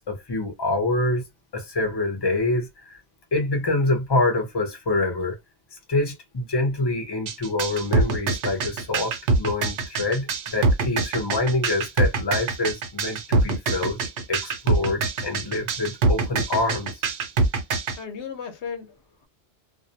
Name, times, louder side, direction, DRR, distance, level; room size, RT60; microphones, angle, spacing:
voice 1, 0.1-1.2 1.5-3.0 3.3-5.4 5.9-14.0 14.3-16.9, left 2 dB, 25° left, 0.7 m, -26 dB
sound 1, 7.3-18.0, right 3 dB, 85° right, 0.9 m, -23 dB
voice 2, 17.9-19.3, left 6 dB, 80° left, 1.0 m, -36 dB
2.5 x 2.1 x 2.7 m
omnidirectional pair, 1.1 m